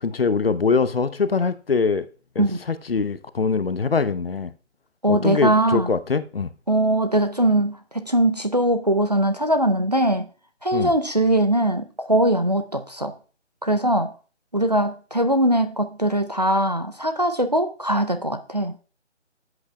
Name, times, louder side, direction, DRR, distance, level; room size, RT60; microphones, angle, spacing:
voice 1, 0.0-2.1 2.4-4.5 5.1-6.5 10.7-10.9, left 5 dB, 55° left, 0.7 m, -23 dB
voice 2, 5.0-6.0 6.7-10.3 10.6-13.2 13.6-14.1 14.5-18.8, right 1 dB, 35° right, 0.5 m, -21 dB
13.5 x 8.1 x 2.2 m
figure-of-eight pair, 165°, 36 cm